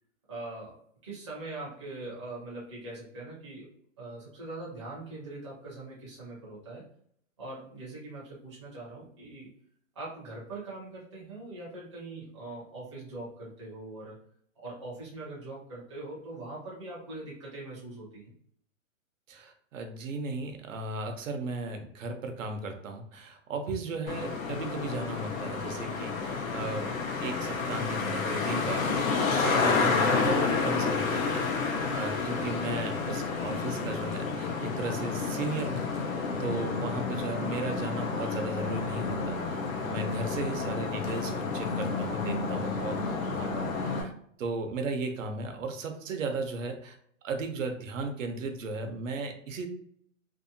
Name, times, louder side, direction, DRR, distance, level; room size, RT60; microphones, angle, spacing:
voice 1, 0.3-6.8 7.4-9.6 9.9-14.2 14.6-18.3, right 2 dB, 25° right, -6 dB, 0.4 m, -42 dB
voice 2, 19.3-26.9 27.2-35.8 36.4-44.1 44.4-47.0 47.2-49.7, right 3 dB, 75° right, 5 dB, 0.6 m, -36 dB
Traffic noise roadway noise, 24.1-44.0, left 4 dB, 85° left, 0.7 m, -30 dB
2.7 x 2.1 x 2.6 m, 0.65 s
hypercardioid pair, 170°, 40 cm